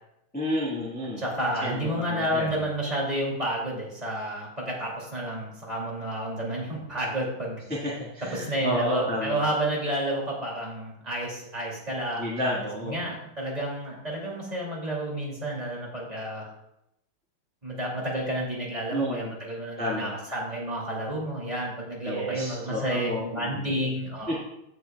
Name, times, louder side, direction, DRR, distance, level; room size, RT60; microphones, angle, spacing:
voice 1, 0.3-1.2 1.6-1.8 2.1-2.5 7.8-9.4 12.2-13.0 18.9-19.3 19.8-20.1 22.0-23.7 24.3-24.4, equal, 5° left, -7 dB, 1.3 m, -30 dB
voice 2, 1.2-7.6 8.2-12.4 12.8-16.5 17.6-24.4, right 1 dB, 20° right, -4 dB, 2.5 m, -30 dB
16.0 x 5.7 x 2.3 m, 0.82 s
omnidirectional pair, 2.3 m